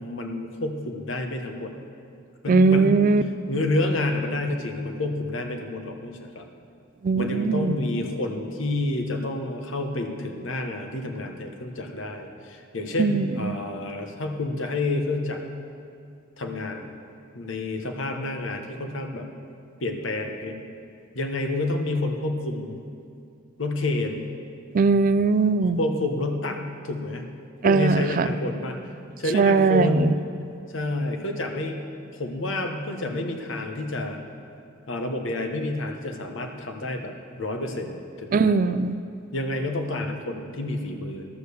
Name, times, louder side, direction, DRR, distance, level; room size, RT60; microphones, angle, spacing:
voice 1, 0.0-1.7 2.4-3.0 3.5-6.5 7.1-15.4 16.4-16.8 17.3-19.2 19.8-20.6 21.1-22.8 23.6-24.2 25.8-27.2 27.6-28.8 29.2-30.2 30.7-31.8 32.1-34.2 34.9-37.1 37.4-38.8 39.3-41.3, left 2 dB, 75° left, 4 dB, 1.1 m, -29 dB
voice 2, 2.5-3.2 7.0-7.7 13.0-13.6 24.7-25.8 27.6-28.3 29.3-30.1 38.3-39.0, right 4 dB, 45° right, 13 dB, 0.4 m, -20 dB
12.0 x 6.6 x 6.9 m, 2.5 s
head